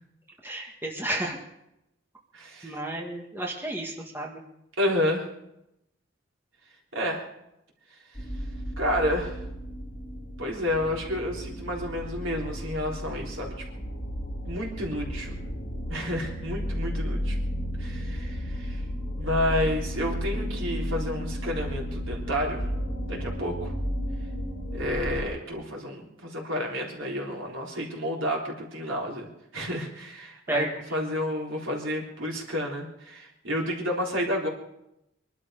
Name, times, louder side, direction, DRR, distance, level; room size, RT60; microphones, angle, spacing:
voice 1, 0.4-1.4 2.6-4.4 30.5-30.7, right 1 dB, 10° right, 0 dB, 1.5 m, -32 dB
voice 2, 2.3-2.8 4.8-5.3 6.9-7.3 8.8-9.4 10.4-13.7 14.5-15.4 15.9-17.4 17.8-18.8 19.2-22.7 23.1-23.7 24.7-29.3 29.5-30.7 30.9-34.5, left 1 dB, 80° right, -1 dB, 3.7 m, -30 dB
sound 1, 8.1-25.2, equal, 35° left, 5.0 m, -33 dB
23.5 x 12.0 x 5.1 m, 0.84 s
head